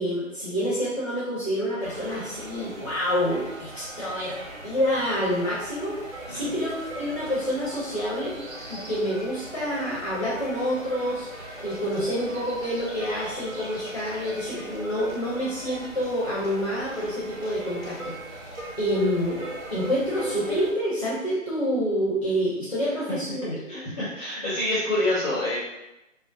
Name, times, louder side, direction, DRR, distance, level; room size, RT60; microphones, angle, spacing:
voice 1, 0.0-4.4 4.6-8.3 8.7-11.3 11.6-23.7, equal, 25° left, -7 dB, 0.5 m, -28 dB
sound 1, 1.8-20.7, right 1 dB, 85° right, 1.1 m, -40 dB
voice 2, 23.7-25.5, left 1 dB, ahead, -13 dB, 1.2 m, -27 dB
3.8 x 2.0 x 2.4 m, 0.94 s
figure-of-eight pair, 160°, 40 cm